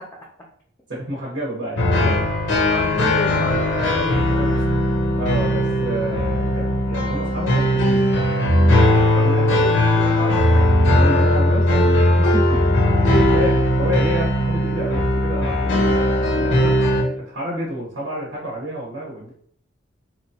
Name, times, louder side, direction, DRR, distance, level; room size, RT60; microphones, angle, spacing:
voice 1, 0.9-2.2 5.1-8.3 9.2-9.5 10.9-12.6 13.3-17.0 17.3-19.3, equal, 85° right, -5 dB, 0.9 m, -29 dB
sound 1, 1.8-17.0, left 1 dB, 80° left, 0.6 m, -18 dB
voice 2, 2.7-4.6 9.2-10.7 13.1-13.4, left 1 dB, 15° left, -3 dB, 0.3 m, -30 dB
2.9 x 2.2 x 2.7 m, 0.63 s
head